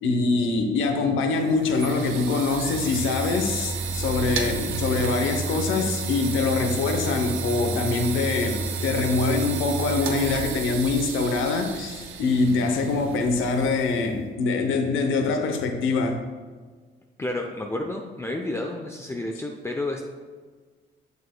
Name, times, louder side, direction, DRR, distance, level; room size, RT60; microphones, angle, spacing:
voice 1, 0.0-16.2, left 3 dB, 80° left, 5 dB, 0.8 m, -24 dB
sound 1, 1.3-14.1, right 4 dB, 85° right, 0.7 m, -31 dB
voice 2, 17.2-20.1, left 2 dB, 15° left, 2 dB, 0.5 m, -30 dB
6.9 x 6.6 x 2.2 m, 1.5 s
cardioid pair, 90°, 20 cm